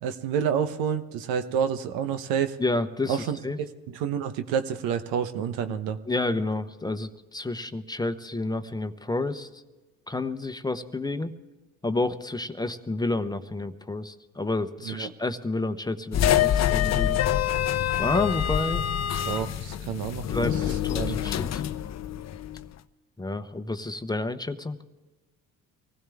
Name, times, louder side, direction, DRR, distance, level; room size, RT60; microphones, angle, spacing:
voice 1, 0.0-2.6 3.1-3.4 4.0-6.0 14.9-15.1 19.3-20.5 20.9-21.2, right 8 dB, 85° right, 9 dB, 1.0 m, -28 dB
voice 2, 2.6-3.6 6.1-9.6 10.1-11.3 11.8-17.2 18.0-18.8 20.3-21.6 23.2-24.8, left 2 dB, 10° left, 9 dB, 0.9 m, -30 dB
sound 1, 16.1-22.6, left 10 dB, 50° left, 0.7 m, -26 dB
24.5 x 16.0 x 3.5 m, 1.2 s
supercardioid pair, 80°, 35 cm